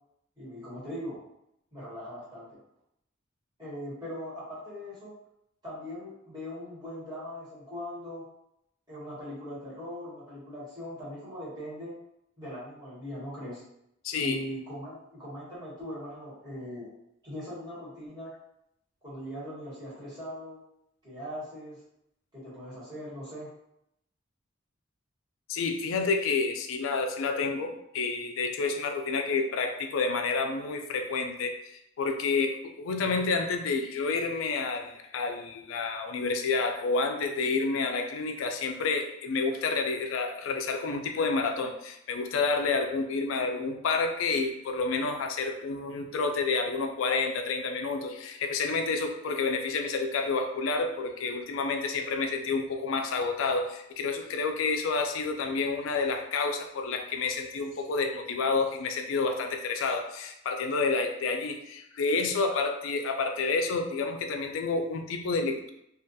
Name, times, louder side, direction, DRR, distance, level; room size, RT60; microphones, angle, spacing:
voice 1, 0.4-1.2 1.7-2.6 3.6-5.1 5.6-8.2 8.9-11.9 12.4-13.6 14.1-16.9 17.2-18.3 19.0-20.6 21.0-21.8 22.3-23.5, left 1 dB, 20° right, -9 dB, 1.1 m, -40 dB
voice 2, 14.0-14.4 25.5-31.5 32.0-65.7, left 4 dB, 75° left, 5 dB, 0.3 m, -29 dB
2.4 x 2.2 x 2.6 m, 0.79 s
head